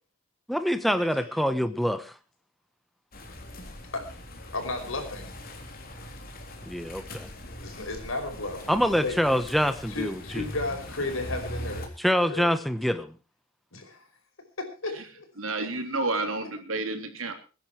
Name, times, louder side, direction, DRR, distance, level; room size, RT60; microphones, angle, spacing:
voice 1, 0.5-2.1 6.7-7.3 8.7-10.4 12.0-13.1, equal, ahead, 10 dB, 1.0 m, -25 dB
sound 1, 3.1-11.9, left 1 dB, 50° left, 3.5 m, -41 dB
voice 2, 4.5-5.3 7.6-9.2 9.9-11.9 12.2-12.5 13.7-14.0 14.6-15.3 15.6-15.7, left 2 dB, 75° left, 4 dB, 5.2 m, -34 dB
voice 3, 15.4-17.3, right 2 dB, 85° right, 6 dB, 3.2 m, -30 dB
22.0 x 10.5 x 4.7 m, 0.35 s
head